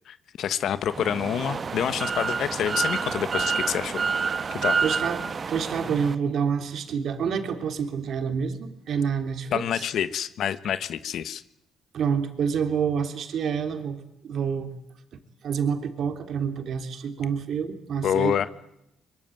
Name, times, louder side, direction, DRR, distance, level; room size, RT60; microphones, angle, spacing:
voice 1, 0.1-4.0 4.6-4.8 9.5-11.4 18.0-18.5, left 9 dB, 70° left, 13 dB, 1.4 m, -27 dB
sound 1, 0.9-6.2, right 5 dB, 40° right, 1.4 m, -28 dB
voice 2, 4.8-9.9 11.9-14.7 15.4-18.5, right 7 dB, 65° right, 7 dB, 3.3 m, -28 dB
24.0 x 23.5 x 9.2 m, 0.84 s
cardioid pair, 90°, 0 cm